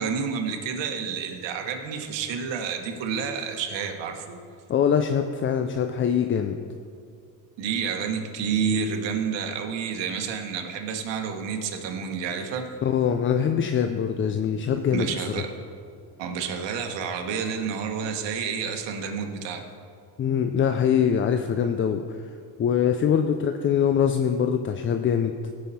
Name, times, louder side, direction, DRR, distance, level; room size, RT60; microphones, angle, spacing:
voice 1, 0.0-4.4 7.6-12.7 14.9-15.5 16.2-19.6, right 6 dB, 70° right, 4 dB, 1.4 m, -29 dB
voice 2, 4.7-6.6 12.8-15.4 20.2-22.0 22.6-25.4, left 8 dB, 30° left, 7 dB, 0.4 m, -23 dB
16.5 x 5.6 x 4.2 m, 2.4 s
cardioid pair, 115°, 45 cm